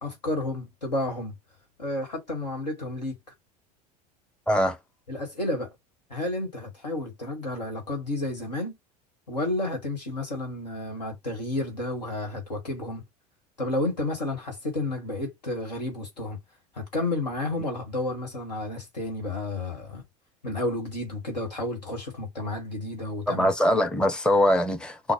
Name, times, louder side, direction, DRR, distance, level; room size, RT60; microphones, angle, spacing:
voice 1, 0.0-1.3 1.8-3.2 5.1-5.7 6.1-8.7 9.3-13.0 13.6-16.4 16.7-20.0 20.4-23.5, left 2 dB, 75° left, 1.4 m, -31 dB
voice 2, 4.5-4.8 23.3-25.1, equal, 5° left, 0.7 m, -22 dB
3.9 x 2.1 x 4.5 m
figure-of-eight pair, 75°, 21 cm